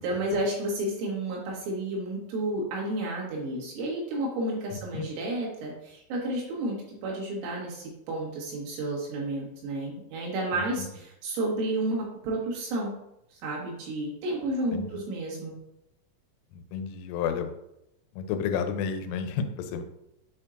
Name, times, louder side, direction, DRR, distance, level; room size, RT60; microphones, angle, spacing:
voice 1, 0.0-12.9 13.3-15.5, right 1 dB, 80° right, -4 dB, 4.2 m, -31 dB
voice 2, 16.7-17.5 18.2-19.8, left 7 dB, 90° left, 8 dB, 3.2 m, -30 dB
8.4 x 4.5 x 2.5 m, 0.83 s
omnidirectional pair, 5.6 m